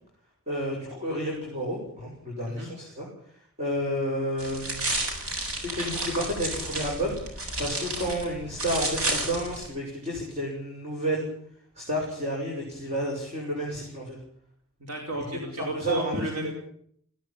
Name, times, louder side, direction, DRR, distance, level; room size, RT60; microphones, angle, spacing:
voice 1, 0.5-3.1 3.6-4.9 5.6-11.3 11.8-14.2 15.6-16.1, equal, 30° right, -2 dB, 6.8 m, -31 dB
sound 1, 4.4-9.7, right 2 dB, 70° right, 7.8 m, -31 dB
voice 2, 14.8-16.5, right 1 dB, 90° right, 1 dB, 4.7 m, -33 dB
20.0 x 18.0 x 9.0 m, 0.67 s
head